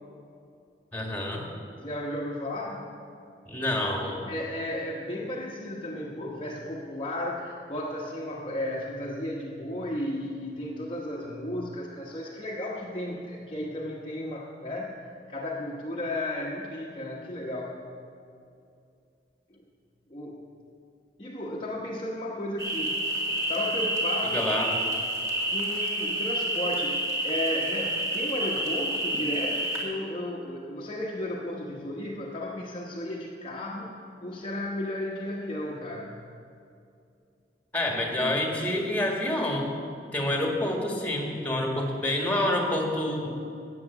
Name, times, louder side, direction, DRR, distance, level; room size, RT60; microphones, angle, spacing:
voice 1, 0.9-1.4 3.5-4.2 24.3-24.7 37.7-39.7 40.1-43.3, left 1 dB, 10° left, 0 dB, 1.9 m, -27 dB
voice 2, 1.8-3.0 4.3-15.0 15.3-17.8 19.5-19.6 20.1-20.4 21.2-23.1 23.5-24.5 25.5-33.9 34.2-36.2, left 1 dB, 30° left, -4 dB, 1.1 m, -34 dB
sound 1, 22.6-29.8, right 1 dB, 20° right, 2.1 m, -29 dB
14.0 x 9.0 x 7.3 m, 2.5 s
head